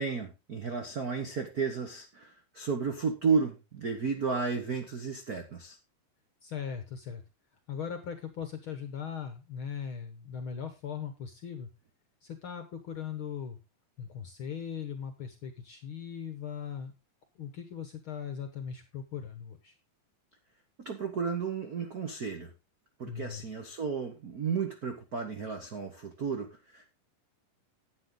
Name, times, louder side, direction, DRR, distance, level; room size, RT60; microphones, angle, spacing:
voice 1, 0.0-5.8 20.8-22.5 23.0-27.0, right 5 dB, 70° right, 4 dB, 0.8 m, -33 dB
voice 2, 6.4-7.2 7.7-11.7 12.2-13.6 14.0-16.9 17.4-19.7 23.1-23.4, left 7 dB, 60° left, 8 dB, 1.4 m, -39 dB
10.5 x 8.7 x 3.9 m, 0.26 s
omnidirectional pair, 3.7 m